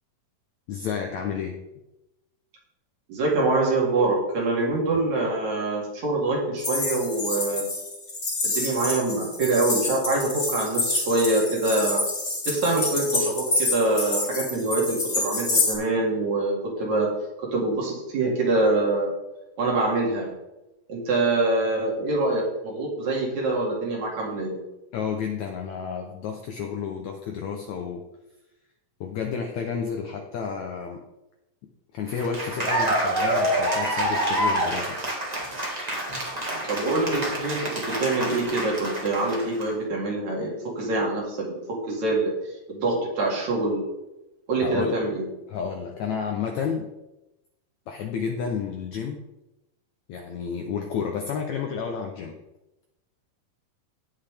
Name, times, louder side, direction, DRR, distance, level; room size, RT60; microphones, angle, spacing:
voice 1, 0.7-1.6 4.9-5.0 24.9-28.0 29.0-31.0 31.9-35.0 44.6-45.0 45.5-46.9 47.9-49.2 50.1-52.4, left 6 dB, 75° left, 3 dB, 1.7 m, -31 dB
voice 2, 3.1-7.7 8.4-12.0 12.5-17.1 17.4-19.1 19.6-20.3 20.9-24.6 36.7-37.6 37.9-42.3 42.7-43.8 44.5-45.3, right 2 dB, 55° right, -3 dB, 3.5 m, -25 dB
sound 1, 6.6-15.7, left 2 dB, 25° left, 2.2 m, -27 dB
Cheering / Applause, 32.1-39.6, right 1 dB, 30° right, 0.7 m, -27 dB
17.5 x 5.8 x 3.4 m, 0.96 s
omnidirectional pair, 4.1 m